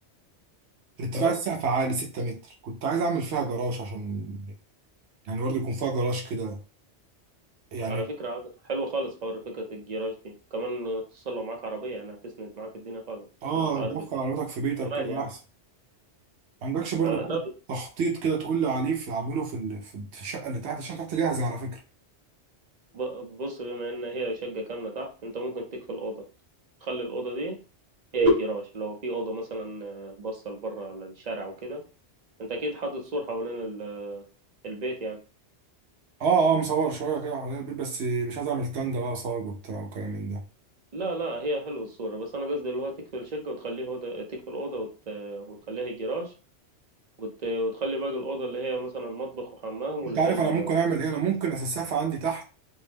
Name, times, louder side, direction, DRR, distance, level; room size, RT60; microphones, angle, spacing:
voice 1, 1.0-4.5 5.2-6.6 7.7-8.1 13.4-15.4 16.6-17.4 17.7-21.8 36.2-40.4 50.0-52.4, right 5 dB, 75° right, 0.9 m, -28 dB
voice 2, 7.9-13.3 13.5-13.9 14.8-15.3 17.0-17.4 22.9-26.2 26.8-27.6 28.1-31.8 32.4-34.2 34.6-35.2 40.9-46.3 47.2-50.8, right 1 dB, 45° right, 0.7 m, -32 dB
2.7 x 2.1 x 3.3 m
omnidirectional pair, 1.2 m